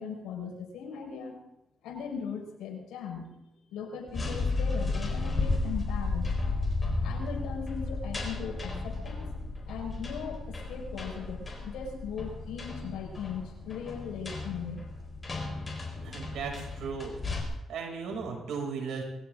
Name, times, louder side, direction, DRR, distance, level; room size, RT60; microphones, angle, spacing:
voice 1, 0.0-1.4 1.8-3.4 3.7-6.3 7.0-9.3 9.7-14.8, left 6 dB, 85° left, 2 dB, 4.9 m, -39 dB
sound 1, 4.1-17.4, left 3 dB, 25° left, 4.7 m, -34 dB
voice 2, 16.0-17.1 17.7-19.0, right 5 dB, 75° right, 1 dB, 6.4 m, -36 dB
22.0 x 16.0 x 3.8 m, 0.88 s
cardioid pair, 90°, 0 cm